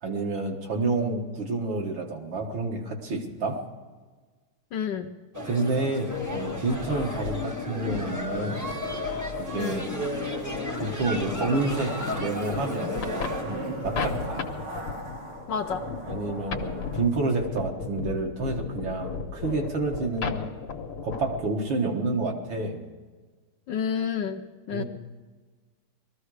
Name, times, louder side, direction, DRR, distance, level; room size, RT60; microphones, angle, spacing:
voice 1, 0.0-3.6 5.4-8.7 9.4-9.9 10.8-13.0 13.4-14.5 16.0-20.4 21.0-22.8 24.7-24.8, right 3 dB, 65° right, 1 dB, 2.4 m, -29 dB
voice 2, 4.7-5.1 9.6-9.8 15.5-15.8 23.7-24.8, left 7 dB, 65° left, 5 dB, 1.2 m, -30 dB
sound 1, 5.3-13.4, equal, 10° right, 0.9 m, -35 dB
sound 2, 6.1-21.5, left 5 dB, 85° left, 2.0 m, -35 dB
Zipper (clothing), 9.4-17.1 17.4-17.5, right 1 dB, 85° right, 3.4 m, -39 dB
19.5 x 14.0 x 4.9 m, 1.4 s
omnidirectional pair, 2.4 m